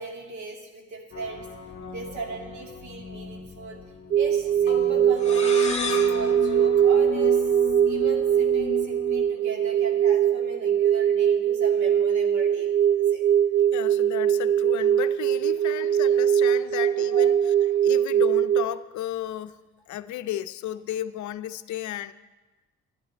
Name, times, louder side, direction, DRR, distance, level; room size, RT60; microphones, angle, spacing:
voice 1, 0.0-1.5 1.9-3.8 4.2-7.5 7.8-13.2 15.7-15.9 16.5-17.3, right 3 dB, 70° right, 2.1 m, -39 dB
sound 1, 1.1-9.3, left 6 dB, 45° left, 1.4 m, -37 dB
sound 2, 4.1-18.6, right 9 dB, 45° right, 0.5 m, -21 dB
sound 3, 5.2-7.8, left 4 dB, 20° left, 1.7 m, -34 dB
voice 2, 13.7-17.4 17.8-19.6 19.9-22.1, left 12 dB, 70° left, 0.5 m, -33 dB
11.0 x 10.5 x 4.3 m
cardioid pair, 90°, 30 cm